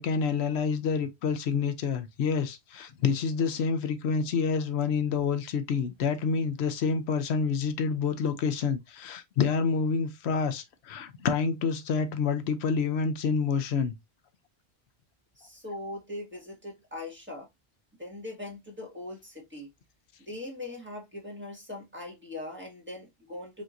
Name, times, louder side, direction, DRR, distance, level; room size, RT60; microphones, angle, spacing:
voice 1, 0.0-14.0, left 5 dB, 85° left, 0.9 m, -28 dB
voice 2, 15.4-17.5 18.0-19.7 20.2-23.6, left 2 dB, 10° right, 1.5 m, -40 dB
5.1 x 2.9 x 2.5 m
omnidirectional pair, 1.1 m